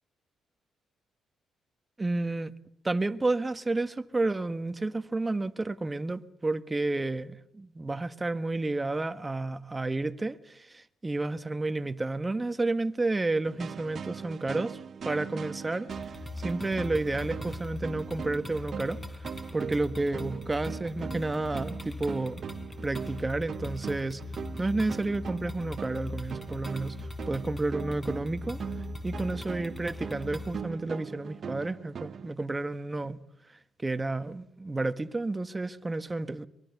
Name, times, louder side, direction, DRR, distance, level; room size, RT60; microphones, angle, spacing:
voice 1, 2.0-2.5 2.8-14.8 15.0-15.9 16.4-19.0 19.5-22.4 22.8-24.2 24.6-28.6 29.0-33.2 33.8-36.5, right 2 dB, 20° right, 1.5 m, -31 dB
sound 1, 13.4-32.3, right 7 dB, 50° right, 1.0 m, -40 dB
sound 2, 15.9-30.6, left 2 dB, 15° left, 4.7 m, -40 dB
23.0 x 22.5 x 7.1 m
cardioid pair, 90°, 0 cm